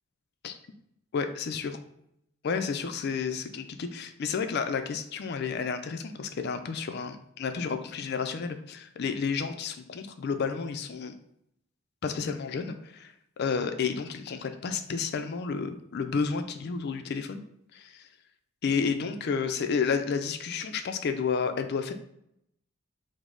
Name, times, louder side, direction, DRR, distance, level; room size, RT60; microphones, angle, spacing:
voice 1, 1.1-1.8 2.4-11.1 12.0-17.4 17.7-18.1 18.6-21.9, left 5 dB, 45° left, 8 dB, 0.3 m, -31 dB
5.0 x 2.0 x 3.7 m, 0.76 s
head